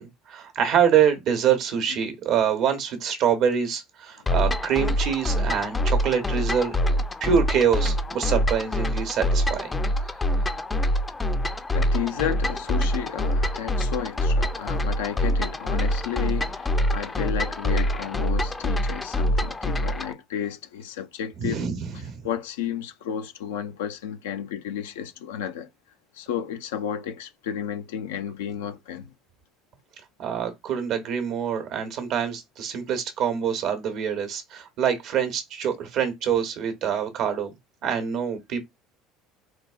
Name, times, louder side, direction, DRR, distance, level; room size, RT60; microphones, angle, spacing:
voice 1, 0.0-6.8 7.2-9.8 21.4-22.2 30.2-37.5 37.8-38.6, right 8 dB, 60° right, 0.9 m, -25 dB
sound 1, 4.3-20.1, equal, 20° left, 0.4 m, -25 dB
voice 2, 11.7-21.6 22.2-25.7 26.1-29.1, left 9 dB, 90° left, 0.4 m, -32 dB
4.0 x 2.3 x 2.3 m
supercardioid pair, 85°, 0 cm